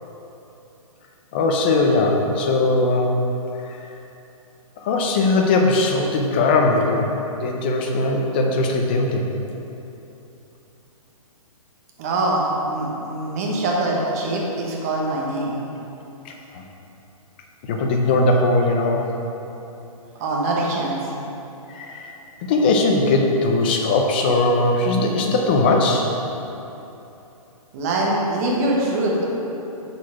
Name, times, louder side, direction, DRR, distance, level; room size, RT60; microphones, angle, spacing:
voice 1, 1.3-3.2 3.7-3.8 4.8-9.3 16.3-16.6 17.6-19.1 21.7-22.2 22.5-26.1, left 2 dB, 15° left, 1 dB, 0.4 m, -20 dB
voice 2, 12.0-15.5 20.2-21.0 27.7-29.3, right 2 dB, 25° right, -2 dB, 1.0 m, -23 dB
6.4 x 4.7 x 5.7 m, 3.0 s
hypercardioid pair, 170°, 18 cm